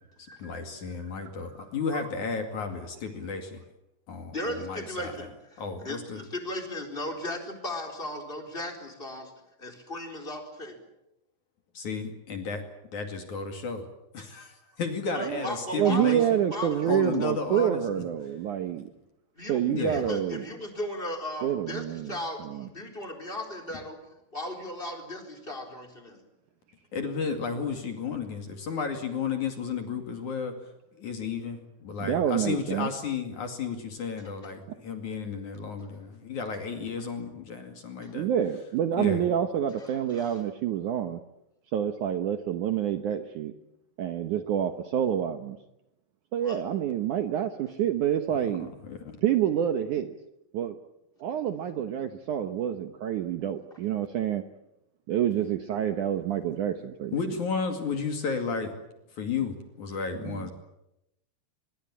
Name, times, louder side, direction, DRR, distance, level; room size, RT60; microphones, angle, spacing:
voice 1, 0.4-3.6 4.1-5.1 5.6-6.2 11.7-12.7 12.9-13.9 14.1-16.2 16.9-17.8 19.7-20.0 26.9-30.5 31.0-38.3 39.0-39.3 48.4-49.2 57.1-58.7 59.2-60.5, left 5 dB, 50° left, 5 dB, 3.3 m, -33 dB
voice 2, 4.3-9.3 9.6-10.8 15.1-17.7 19.4-24.0 24.3-26.2 34.2-34.5 35.8-35.9 38.0-38.2 39.8-40.4 46.4-46.6, left 1 dB, 10° left, 4 dB, 3.9 m, -37 dB
voice 3, 15.8-18.9 19.5-20.4 21.4-22.1 22.4-22.7 32.0-32.9 38.2-41.2 41.7-43.5 44.0-45.6 46.3-48.7 49.2-50.1 50.5-50.8 51.2-54.4 55.1-57.3 60.2-60.5, right 10 dB, 90° right, 8 dB, 1.7 m, -28 dB
24.5 x 22.5 x 8.9 m, 0.87 s
omnidirectional pair, 5.2 m